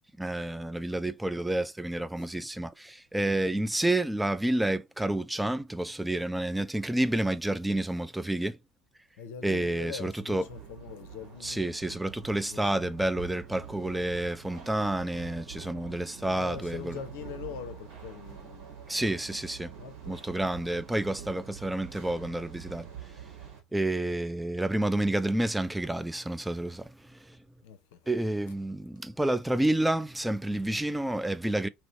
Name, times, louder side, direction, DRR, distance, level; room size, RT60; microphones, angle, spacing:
voice 1, 0.2-8.6 9.4-10.4 11.4-17.0 18.9-19.7 20.1-22.9 23.7-27.4 28.1-31.7, right 1 dB, 5° right, 0.4 m, -29 dB
voice 2, 9.2-12.0 12.4-12.9 16.4-18.7 19.8-20.2 27.6-28.0, left 8 dB, 70° left, 0.6 m, -43 dB
sound 1, 10.3-23.6, right 8 dB, 65° right, 1.9 m, -46 dB
3.0 x 3.0 x 2.7 m
hypercardioid pair, 70°, 0 cm